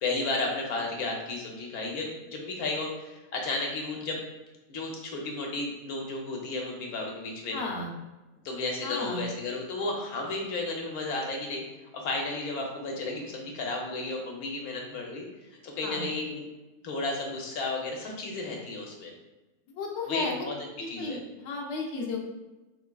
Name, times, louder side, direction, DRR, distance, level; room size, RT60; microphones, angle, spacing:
voice 1, 0.0-4.2 4.7-7.6 8.4-11.6 11.9-15.3 15.6-16.4 16.8-19.1 20.1-20.5 20.9-21.2, left 2 dB, 75° left, 0 dB, 1.2 m, -33 dB
voice 2, 7.5-7.9 8.8-9.2 15.8-16.1 19.8-20.4 20.8-22.2, left 3 dB, 55° left, -2 dB, 0.9 m, -33 dB
4.8 x 3.1 x 2.2 m, 1.1 s
omnidirectional pair, 1.6 m